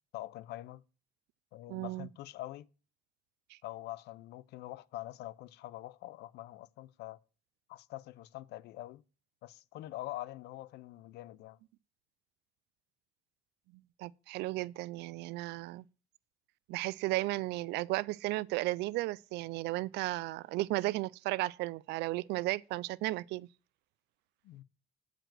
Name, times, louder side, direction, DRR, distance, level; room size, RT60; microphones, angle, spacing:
voice 1, 0.1-0.8 1.5-2.7 3.6-7.2 7.7-9.0 9.4-11.6 24.4-24.6, left 16 dB, 80° left, 0.6 m, -44 dB
voice 2, 1.7-2.1 14.0-15.8 16.7-23.5, right 19 dB, 85° right, 0.4 m, -34 dB
9.0 x 5.0 x 7.4 m
cardioid pair, 110°, 17 cm